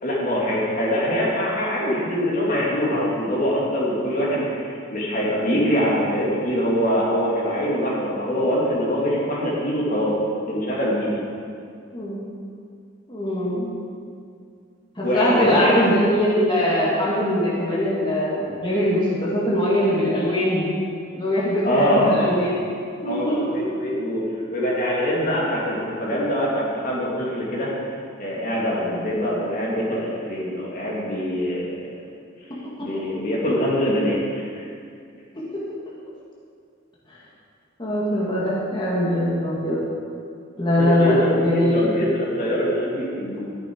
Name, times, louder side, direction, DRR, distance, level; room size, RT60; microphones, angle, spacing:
voice 1, 0.0-10.2 10.5-11.2 15.0-15.7 21.6-22.3 23.1-24.2 24.5-27.9 28.2-31.7 32.8-34.7 40.8-43.4, equal, 45° left, -5 dB, 2.6 m, -23 dB
voice 2, 13.1-13.7 15.0-20.7 21.2-22.7 23.0-23.6 35.5-35.6 37.8-39.8 40.6-41.8, left 1 dB, 25° left, -8 dB, 2.4 m, -21 dB
13.5 x 10.5 x 4.7 m, 2.3 s
head